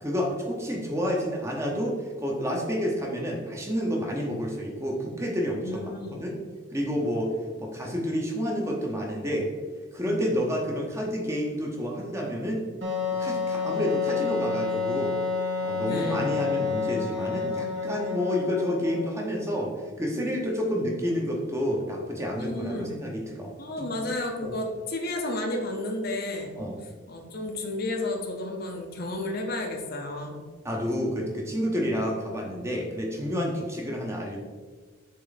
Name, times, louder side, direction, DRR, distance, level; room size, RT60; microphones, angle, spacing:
voice 1, 0.0-6.4 6.7-7.3 7.6-9.5 9.9-12.6 13.2-15.2 15.6-19.7 20.0-23.5 23.8-23.9 24.4-24.6 26.6-26.7 30.6-34.4, equal, 15° right, -1 dB, 0.8 m, -29 dB
voice 2, 5.6-6.3 15.8-16.3 22.4-23.0 23.6-26.6 27.1-30.4, left 2 dB, 50° left, 2 dB, 0.7 m, -32 dB
Wind instrument woodwind instrument, 12.8-19.3, left 5 dB, 60° right, 1.4 m, -29 dB
6.6 x 3.8 x 4.1 m, 1.5 s
head